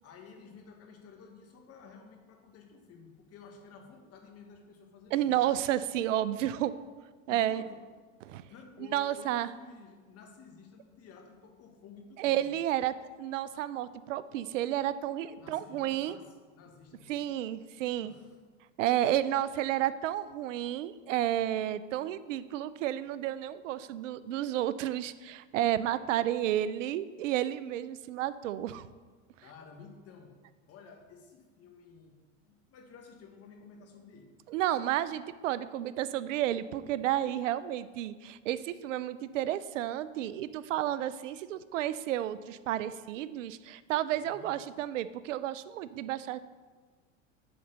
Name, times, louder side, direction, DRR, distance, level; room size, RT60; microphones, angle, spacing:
voice 1, 0.0-5.3 6.4-6.7 7.3-7.8 8.3-12.5 15.4-17.2 18.0-18.4 29.4-30.4 30.7-32.2 32.4-34.4 44.1-44.6, left 5 dB, 40° left, 3 dB, 1.5 m, -53 dB
voice 2, 5.1-6.7 7.3-7.6 8.2-8.4 8.9-9.5 12.2-16.2 17.1-18.1 18.8-28.9 34.5-46.4, right 12 dB, 75° right, 15 dB, 0.5 m, -31 dB
7.7 x 3.9 x 6.7 m, 1.4 s
hypercardioid pair, 100°, 38 cm